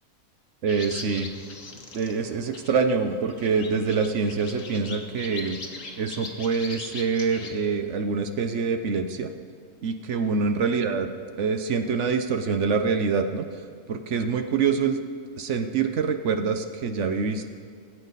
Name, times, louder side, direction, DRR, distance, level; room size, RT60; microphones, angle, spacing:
voice 1, 0.6-1.3 1.9-5.6 6.0-9.3 9.8-11.1 11.4-13.5 13.9-15.0 15.4-17.5, right 5 dB, 60° right, 7 dB, 1.0 m, -25 dB
sound 1, 0.7-7.5, left 4 dB, 65° left, 1.6 m, -41 dB
20.5 x 8.3 x 4.0 m, 2.2 s
omnidirectional pair, 1.5 m